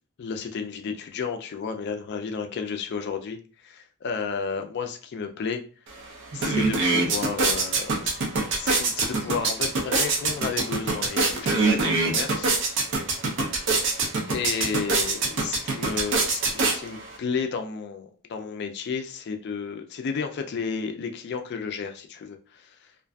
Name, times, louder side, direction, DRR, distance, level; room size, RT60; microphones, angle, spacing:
voice 1, 0.2-3.4 3.6-5.6 6.3-8.2 8.5-12.5 13.9-22.7, left 5 dB, 50° left, 5 dB, 0.3 m, -32 dB
sound 1, 5.9-6.0 6.3-17.2, right 3 dB, 55° right, 0.5 m, -25 dB
2.5 x 2.4 x 2.2 m, 0.39 s
head